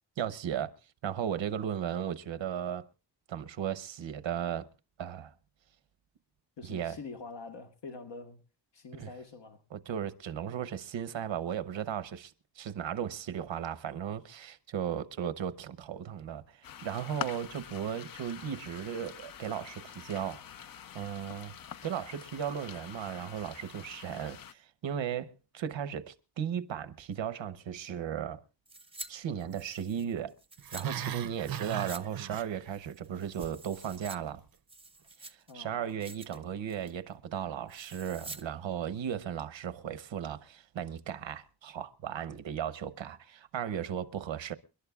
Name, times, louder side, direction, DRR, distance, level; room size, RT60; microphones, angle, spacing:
voice 1, 0.2-0.7 1.0-2.9 3.3-4.7 5.0-5.3 6.6-7.0 9.0-9.1 9.7-20.4 20.9-21.5 21.8-28.4 29.1-30.3 30.7-34.4 35.2-44.5, right 9 dB, 90° right, 1.0 m, -36 dB
voice 2, 6.6-8.4 8.7-9.6 35.5-35.9 36.3-36.5, left 4 dB, 70° left, 1.4 m, -45 dB
sound 1, 16.6-24.5, left 8 dB, 50° left, 0.6 m, -45 dB
sound 2, 28.7-29.1 29.4-30.9 31.4-32.1 32.3-32.4 32.9-34.2 34.5-35.5 35.9-36.4 36.7-37.0 37.7-38.4 38.7-38.8, right 2 dB, 15° right, 0.6 m, -47 dB
Growling, 30.6-32.9 33.2-33.6 33.9-34.0, right 11 dB, 50° right, 0.6 m, -38 dB
29.0 x 11.5 x 2.3 m
wide cardioid pair, 160°, 44 cm